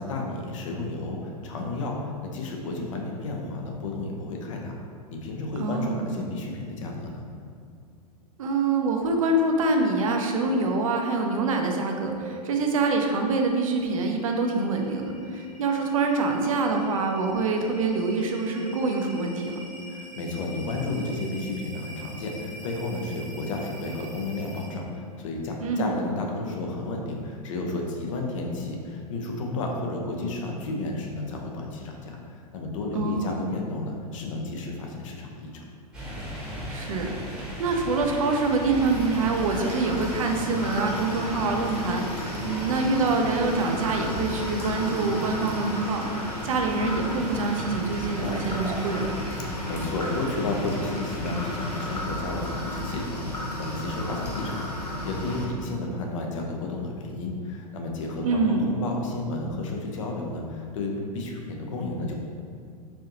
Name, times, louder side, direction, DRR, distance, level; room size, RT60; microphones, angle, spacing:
voice 1, 0.0-2.0 2.3-4.8 5.1-7.2 19.9-35.7 49.4-62.2, left 2 dB, 55° left, 0 dB, 0.6 m, -32 dB
voice 2, 5.6-6.1 8.4-19.6 25.6-26.0 32.9-33.4 36.7-49.1 58.2-58.7, right 3 dB, 60° right, 3 dB, 0.5 m, -25 dB
sound 1, 11.3-24.9, right 1 dB, 15° left, 1.2 m, -42 dB
sound 2, 35.9-52.0, equal, 5° right, 0.9 m, -39 dB
sound 3, 38.7-55.5, left 1 dB, 85° left, 0.9 m, -33 dB
4.2 x 2.7 x 2.7 m, 2.3 s
figure-of-eight pair, 95°, 20 cm